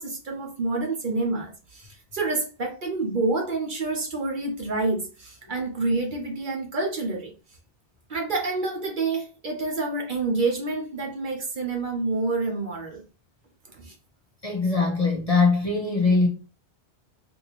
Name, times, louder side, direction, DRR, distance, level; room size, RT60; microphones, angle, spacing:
voice 1, 0.0-7.3 8.1-13.0 13.7-13.9, right 3 dB, 50° right, 0.8 m, -28 dB
voice 2, 14.4-16.3, left 3 dB, 40° left, 0.6 m, -21 dB
3.5 x 2.7 x 2.9 m
omnidirectional pair, 1.2 m